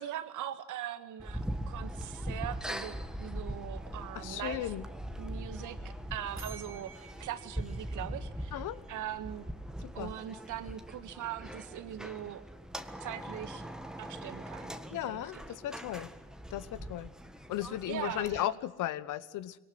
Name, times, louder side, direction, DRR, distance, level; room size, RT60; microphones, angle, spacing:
voice 1, 0.0-4.7 5.2-5.8 6.1-9.5 9.9-12.4 13.0-13.6 14.0-15.3 17.9-18.5, right 11 dB, 60° right, 11 dB, 1.8 m, -41 dB
sound 1, 1.2-18.4, equal, ahead, 1.7 m, -41 dB
voice 2, 4.1-4.8 8.5-8.8 9.8-10.1 14.9-16.1 16.5-17.1 17.5-19.6, left 13 dB, 65° left, 16 dB, 1.2 m, -36 dB
sound 2, 6.4-9.1, right 4 dB, 35° right, 3.1 m, -53 dB
22.0 x 19.0 x 7.8 m, 1.1 s
hypercardioid pair, 70°, 34 cm